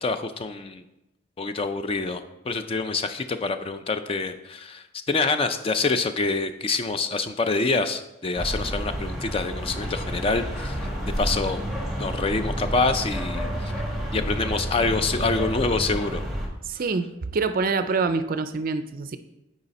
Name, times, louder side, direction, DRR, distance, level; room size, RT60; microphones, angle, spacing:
voice 1, 0.0-0.8 1.4-10.9 11.2-11.6 12.0-13.8 14.1-16.2, left 3 dB, 25° left, 9 dB, 0.3 m, -26 dB
sound 1, 8.4-16.5, equal, ahead, 1.1 m, -30 dB
voice 2, 16.7-19.2, right 4 dB, 45° right, 11 dB, 0.4 m, -26 dB
8.0 x 4.9 x 4.1 m, 0.93 s
head